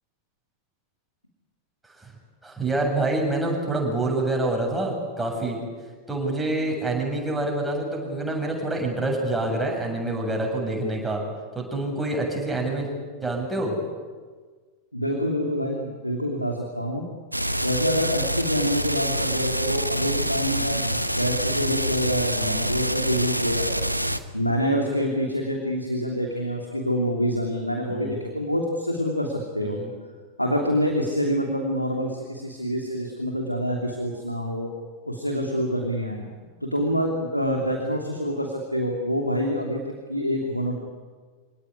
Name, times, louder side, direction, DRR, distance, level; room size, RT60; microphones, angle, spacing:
voice 1, 2.4-5.6 6.1-11.2 11.5-12.9 13.2-13.8 20.6-20.9 22.3-22.7 27.9-28.2 29.6-29.9, right 2 dB, 5° right, -1 dB, 7.8 m, -27 dB
voice 2, 14.9-17.0 17.6-23.8 24.3-29.8 30.4-34.7 35.0-36.2 36.6-40.7, equal, 90° left, 1 dB, 3.0 m, -26 dB
sound 1, 17.3-24.2, right 1 dB, 90° right, 1.2 m, -26 dB
26.5 x 18.0 x 9.9 m, 1.5 s
figure-of-eight pair, 90°, 0 cm